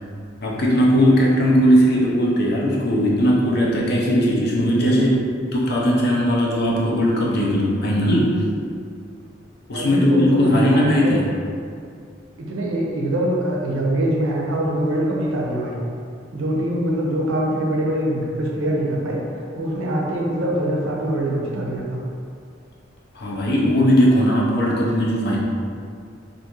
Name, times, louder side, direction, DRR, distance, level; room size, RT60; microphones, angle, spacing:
voice 1, 0.4-5.2 5.5-8.4 9.7-11.2 23.1-25.4, equal, 55° left, -4 dB, 0.5 m, -18 dB
voice 2, 4.8-5.3 9.7-11.2 12.4-15.8 16.3-19.2 19.5-22.0, right 1 dB, 85° right, -3 dB, 0.5 m, -23 dB
2.5 x 2.4 x 2.9 m, 2.3 s
head